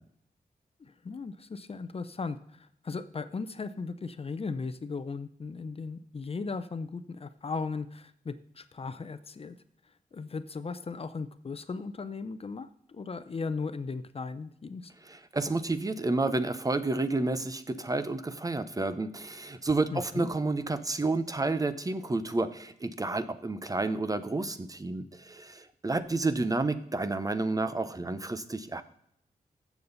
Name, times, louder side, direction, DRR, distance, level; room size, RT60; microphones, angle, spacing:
voice 1, 0.8-9.6 10.1-14.9 19.9-20.3, left 4 dB, 40° left, 12 dB, 0.6 m, -37 dB
voice 2, 15.1-28.8, right 2 dB, 25° right, 12 dB, 0.7 m, -30 dB
14.5 x 7.2 x 4.0 m, 0.69 s
wide cardioid pair, 110°, 15 cm